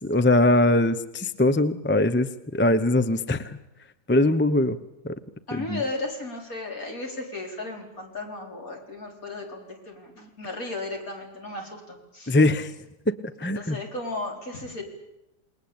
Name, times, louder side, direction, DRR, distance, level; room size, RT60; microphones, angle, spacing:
voice 1, 0.0-3.6 4.1-4.8 5.0-5.1 5.5-5.8 12.3-12.7 13.1-13.2 13.4-13.8, left 1 dB, 10° left, 13 dB, 0.6 m, -21 dB
voice 2, 5.5-12.4 13.4-14.8, left 2 dB, 55° left, 2 dB, 5.0 m, -35 dB
28.0 x 21.0 x 8.8 m, 0.89 s
omnidirectional pair, 1.8 m